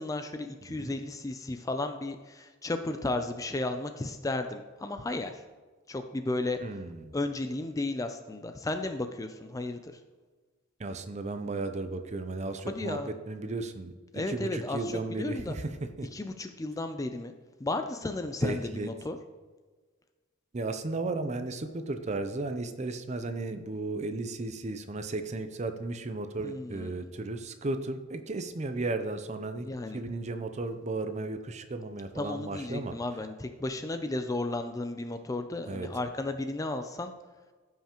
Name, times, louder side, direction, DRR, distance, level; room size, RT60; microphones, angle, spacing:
voice 1, 0.0-5.3 5.9-6.6 7.1-10.0 12.7-13.1 14.1-15.5 16.1-17.3 17.6-19.2 26.4-27.0 29.6-30.0 32.2-37.1, left 2 dB, 15° left, 7 dB, 0.4 m, -34 dB
voice 2, 6.6-7.1 10.8-16.1 18.4-18.9 20.5-29.7 29.9-32.9 35.6-35.9, right 2 dB, 35° right, 8 dB, 0.5 m, -35 dB
14.5 x 5.6 x 3.0 m, 1.4 s
head